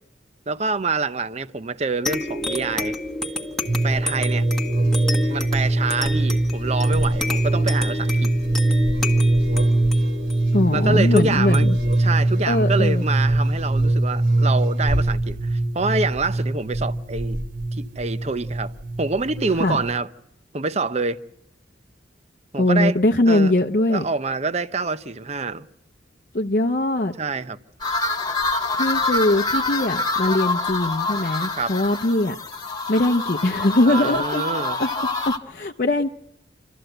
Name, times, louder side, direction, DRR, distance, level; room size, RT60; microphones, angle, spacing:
voice 1, 0.5-3.0 3.8-4.5 5.3-8.3 10.7-11.7 12.0-17.4 17.8-18.7 19.0-20.1 20.5-21.2 22.5-23.0 23.3-23.5 23.9-25.7 27.2-27.6 31.6-31.8 33.8-34.8, right 3 dB, 35° right, 0.7 m, -26 dB
sound 1, 2.1-13.1, left 1 dB, 5° left, 1.4 m, -31 dB
sound 2, 3.7-20.0, right 1 dB, 65° right, 2.5 m, -22 dB
voice 2, 10.5-11.8 12.5-13.0 19.6-19.8 22.6-24.0 26.3-27.1 28.8-32.4 32.9-34.4 34.8-34.9 35.3-36.1, left 1 dB, 50° left, 0.7 m, -21 dB
sound 3, 27.8-35.4, left 3 dB, 20° left, 1.6 m, -26 dB
27.5 x 13.5 x 7.9 m
head